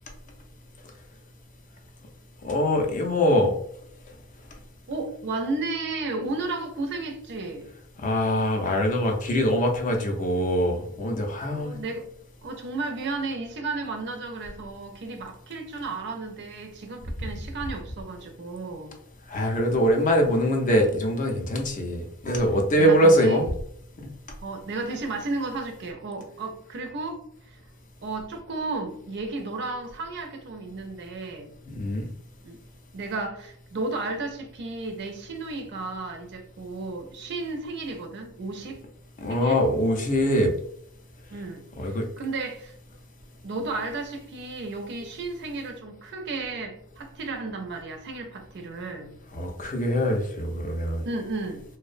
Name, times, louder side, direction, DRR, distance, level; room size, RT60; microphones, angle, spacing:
voice 1, 2.4-3.5 8.0-11.8 19.3-23.4 31.7-32.1 39.2-40.5 41.8-42.1 49.3-51.0, equal, 35° left, 0.4 m, -23 dB
voice 2, 4.9-7.7 11.5-12.1 12.4-19.0 22.8-23.4 24.4-27.6 28.0-31.6 32.4-32.6 32.9-38.8 39.3-39.6 41.3-42.7 43.4-49.2 51.0-51.6, right 3 dB, 50° right, 0.4 m, -33 dB
2.5 x 2.0 x 2.4 m
head